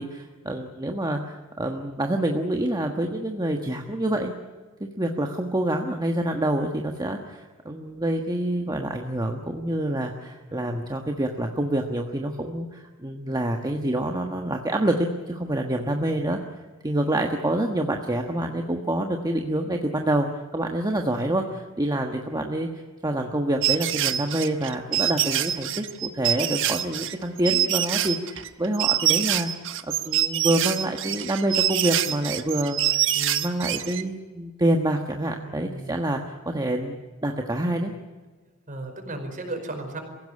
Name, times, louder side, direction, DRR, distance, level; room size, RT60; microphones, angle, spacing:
voice 1, 0.0-4.4 4.8-16.4 16.8-20.3 20.5-22.7 23.0-29.5 30.0-37.9, right 1 dB, 20° right, 3 dB, 1.4 m, -27 dB
sound 1, 23.6-34.0, right 12 dB, 65° right, 1.3 m, -25 dB
voice 2, 35.4-35.9 38.7-40.0, right 2 dB, 40° right, 5 dB, 5.0 m, -35 dB
23.5 x 16.5 x 9.9 m, 1.3 s
head